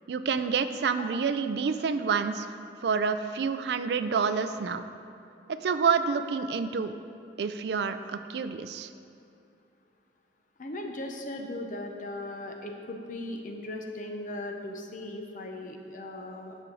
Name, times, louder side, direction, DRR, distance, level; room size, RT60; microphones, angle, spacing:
voice 1, 0.1-4.8 5.6-6.9 7.4-8.9, right 5 dB, 65° right, 10 dB, 0.4 m, -28 dB
voice 2, 10.6-16.6, left 1 dB, 45° left, 3 dB, 0.7 m, -38 dB
11.5 x 4.5 x 3.8 m, 2.6 s
head